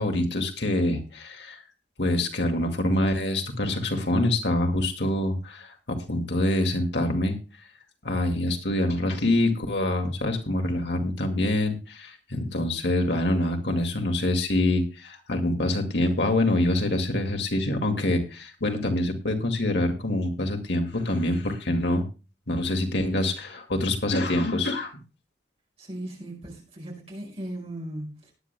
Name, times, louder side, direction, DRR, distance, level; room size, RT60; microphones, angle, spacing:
voice 1, 0.0-1.6 2.0-7.4 8.0-22.0 22.5-25.0, left 1 dB, 75° left, 2.2 m, -25 dB
voice 2, 25.8-28.3, right 1 dB, 35° right, 5.3 m, -37 dB
19.0 x 10.5 x 2.2 m
head